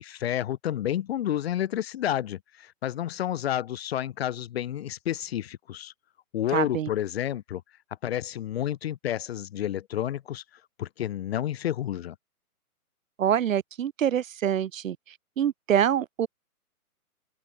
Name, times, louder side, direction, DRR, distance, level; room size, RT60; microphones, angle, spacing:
voice 1, 0.0-5.9 6.3-7.6 8.0-10.4 10.8-12.1, left 11 dB, 40° left, 1.2 m, -30 dB
voice 2, 6.5-6.9 13.2-15.0 15.4-16.3, right 10 dB, 60° right, 1.1 m, -25 dB
hypercardioid pair, 150°, 45 cm